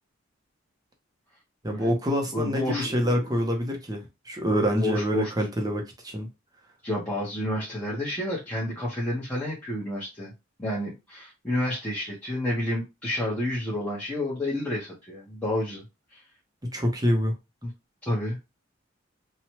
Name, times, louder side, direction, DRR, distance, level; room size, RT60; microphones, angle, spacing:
voice 1, 1.6-6.3 16.6-17.3, equal, 20° right, 0.7 m, -26 dB
voice 2, 2.3-3.3 4.8-5.3 6.8-10.3 10.6-15.8 16.1-16.2 17.6-17.7 18.0-18.4, left 1 dB, 10° left, 0.9 m, -30 dB
2.8 x 2.3 x 3.0 m
head